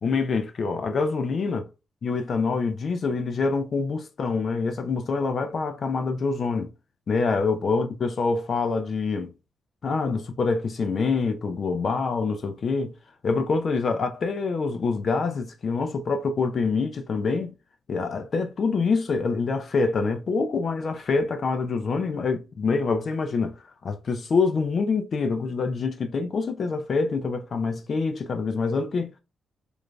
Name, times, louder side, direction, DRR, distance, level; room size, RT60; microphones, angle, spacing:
voice 1, 0.0-1.6 2.0-6.7 7.1-9.3 9.8-12.9 13.2-17.5 17.9-23.5 23.8-29.2, left 4 dB, 60° left, 0.6 m, -26 dB
4.7 x 2.6 x 2.3 m
cardioid pair, 60°, 0 cm